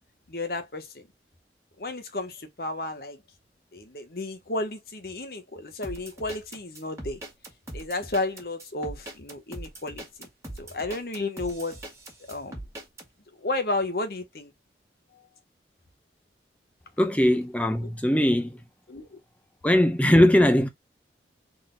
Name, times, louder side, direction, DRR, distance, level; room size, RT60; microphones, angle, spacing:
voice 1, 0.3-1.1 1.8-3.2 3.7-7.2 7.7-10.0 10.6-11.8 12.3-12.5 13.4-14.5 18.9-19.2, left 2 dB, 55° left, 1.1 m, -32 dB
sound 1, 5.8-13.1, right 1 dB, 15° right, 1.6 m, -40 dB
voice 2, 17.0-18.6 19.6-20.7, left 1 dB, 10° left, 0.6 m, -20 dB
4.0 x 2.9 x 3.8 m
head